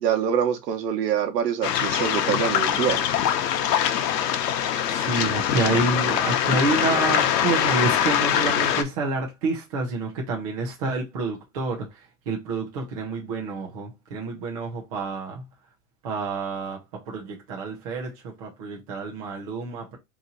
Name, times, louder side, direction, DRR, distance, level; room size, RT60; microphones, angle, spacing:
voice 1, 0.0-3.1, right 8 dB, 85° right, 1.0 m, -25 dB
Waves surf, 1.6-8.8, left 9 dB, 85° left, 0.8 m, -23 dB
voice 2, 4.9-15.4 16.0-16.8 17.1-20.0, right 3 dB, 25° right, 0.6 m, -28 dB
2.9 x 2.6 x 3.7 m
supercardioid pair, 170°, 47 cm